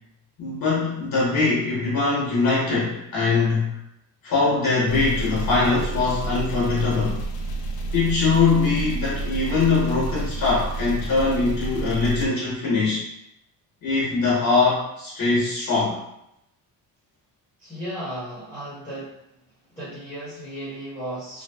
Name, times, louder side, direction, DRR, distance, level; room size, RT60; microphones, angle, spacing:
voice 1, 0.4-3.8 4.2-7.2 7.9-13.0 13.8-16.0, left 4 dB, 50° left, -6 dB, 0.9 m, -22 dB
sound 1, 4.9-12.3, right 2 dB, 80° left, 0.5 m, -30 dB
voice 2, 17.6-19.1 19.7-21.4, right 1 dB, 5° left, -12 dB, 0.8 m, -35 dB
2.6 x 2.2 x 2.2 m, 0.80 s
cardioid pair, 130°, 44 cm